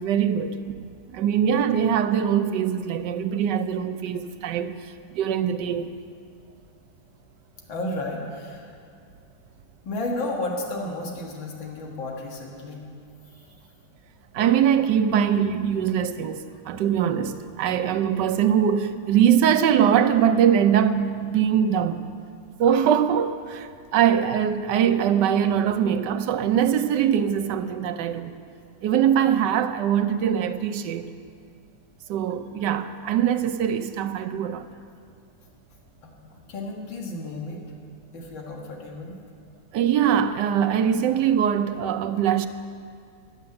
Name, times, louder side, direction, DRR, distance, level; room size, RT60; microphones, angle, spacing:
voice 1, 0.0-4.8 5.1-5.9 14.3-22.0 22.6-28.3 28.8-31.1 32.1-34.6 39.7-42.5, right 9 dB, 70° right, 1.2 m, -22 dB
voice 2, 7.7-8.8 9.8-12.8 36.0-37.6 38.1-39.2, left 2 dB, 75° left, 2.3 m, -32 dB
11.0 x 8.7 x 9.6 m
omnidirectional pair, 2.1 m